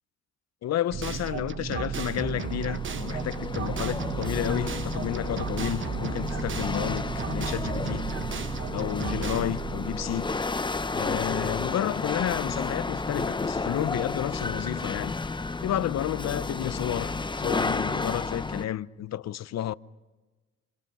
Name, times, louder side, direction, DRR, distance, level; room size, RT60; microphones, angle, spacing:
voice 1, 0.6-8.0 8.7-10.3 10.9-15.1 15.6-19.7, left 12 dB, 60° left, 0.7 m, -31 dB
sound 1, 0.9-10.8, right 7 dB, 40° right, 1.1 m, -34 dB
Chatter / Hiss / Rattle, 1.8-18.7, left 3 dB, 15° left, 0.8 m, -32 dB
28.0 x 26.5 x 5.5 m
cardioid pair, 90°, 30 cm